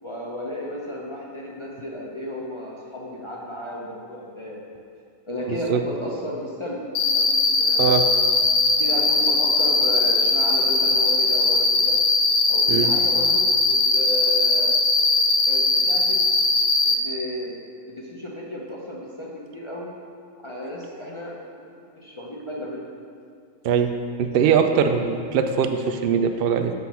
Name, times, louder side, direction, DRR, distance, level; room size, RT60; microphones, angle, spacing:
voice 1, 0.0-4.8 5.3-7.9 8.8-12.0 12.5-14.7 15.5-16.2 16.8-17.6 17.9-19.9 20.4-21.3 21.9-22.8, left 1 dB, 35° left, -4 dB, 0.5 m, -33 dB
voice 2, 5.5-5.8 7.8-8.0 12.7-12.9 23.6-23.9 24.2-26.7, right 7 dB, 80° right, 7 dB, 0.5 m, -21 dB
Cricket, 6.9-16.9, left 3 dB, 65° left, 0.9 m, -20 dB
8.1 x 3.7 x 5.6 m, 2.3 s
omnidirectional pair, 1.5 m